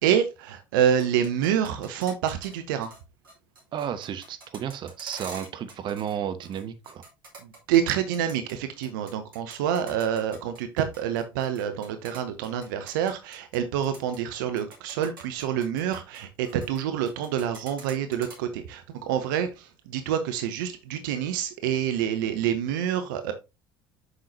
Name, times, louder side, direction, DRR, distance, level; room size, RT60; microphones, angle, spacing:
voice 1, 0.0-2.9 7.4-23.3, right 9 dB, 70° right, 0.8 m, -27 dB
sound 1, 1.0-2.5 2.8-3.0 3.2-6.1 6.4-8.5 8.8-13.6 13.8-14.2 14.6-16.8 17.1-18.4, right 3 dB, 85° right, 2.5 m, -45 dB
voice 2, 3.7-7.0, right 9 dB, 45° right, 1.0 m, -33 dB
8.0 x 5.7 x 2.7 m
figure-of-eight pair, 65°, 11 cm